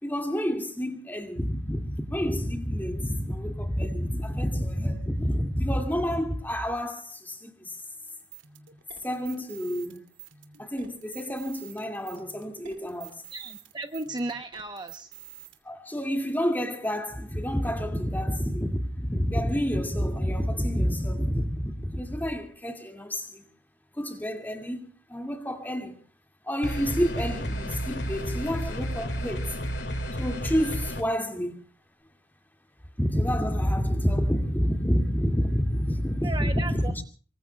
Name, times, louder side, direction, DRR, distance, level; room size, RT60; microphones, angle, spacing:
voice 1, 0.0-7.7 9.0-10.0 10.6-13.2 15.7-23.4 24.0-24.8 25.1-26.0 26.5-29.5 30.2-31.6 33.0-37.0, equal, 10° left, 2.2 m, -28 dB
sound 1, 8.1-15.6, right 11 dB, 75° right, 2.7 m, -48 dB
voice 2, 13.3-15.1 36.2-37.0, right 2 dB, 20° right, 0.9 m, -35 dB
sound 2, 26.6-31.0, equal, 60° left, 2.5 m, -31 dB
26.0 x 23.5 x 2.3 m
head